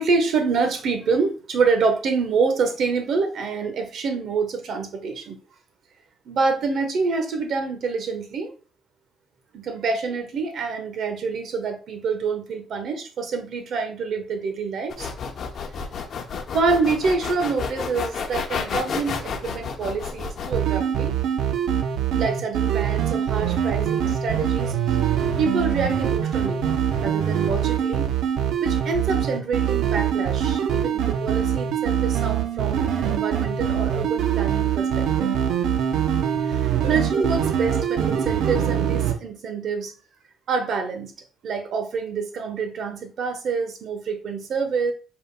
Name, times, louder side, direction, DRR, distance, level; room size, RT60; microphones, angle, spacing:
voice 1, 0.0-5.4 6.3-8.5 9.5-15.1 16.5-21.2 22.1-25.0 25.4-26.7 27.0-28.1 28.6-35.3 36.4-39.9 40.5-41.1 41.4-44.9, right 4 dB, 60° right, 6 dB, 1.1 m, -26 dB
sound 1, 14.9-20.6, left 5 dB, 55° left, 0.8 m, -30 dB
sound 2, 20.5-39.1, right 9 dB, 85° right, 0.7 m, -23 dB
5.4 x 4.4 x 2.2 m, 0.36 s
cardioid pair, 115°, 0 cm